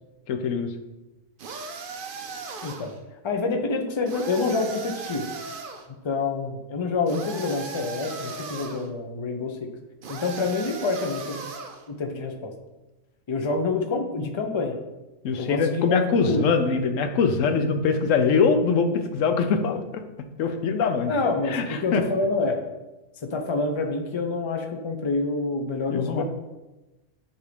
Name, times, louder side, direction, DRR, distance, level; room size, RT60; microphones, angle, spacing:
voice 1, 0.3-0.7 15.2-20.0 20.4-21.1 21.5-22.0 25.9-26.2, left 5 dB, 80° left, 6 dB, 1.0 m, -23 dB
sound 1, 1.4-3.0 4.1-5.9 7.1-8.9 10.0-11.8, right 4 dB, 55° right, 0.7 m, -37 dB
voice 2, 2.6-2.9 3.2-5.2 6.0-9.7 10.1-11.4 11.9-12.5 13.3-14.8 15.4-16.4 21.1-22.6 23.2-26.2, left 3 dB, 35° left, 4 dB, 0.4 m, -27 dB
7.8 x 2.7 x 5.1 m, 1.0 s
omnidirectional pair, 1.3 m